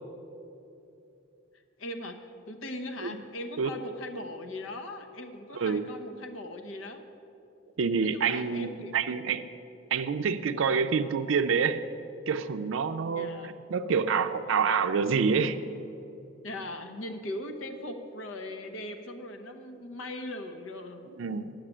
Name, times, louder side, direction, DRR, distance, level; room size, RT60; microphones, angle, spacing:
voice 1, 1.8-7.0 8.0-9.1 13.1-13.5 16.4-21.1, left 1 dB, 85° left, 6 dB, 1.0 m, -39 dB
voice 2, 7.8-8.7 8.9-9.5 9.9-11.8 12.3-15.6 21.2-21.5, right 5 dB, 80° right, 8 dB, 0.4 m, -27 dB
9.7 x 6.6 x 8.9 m, 2.8 s
head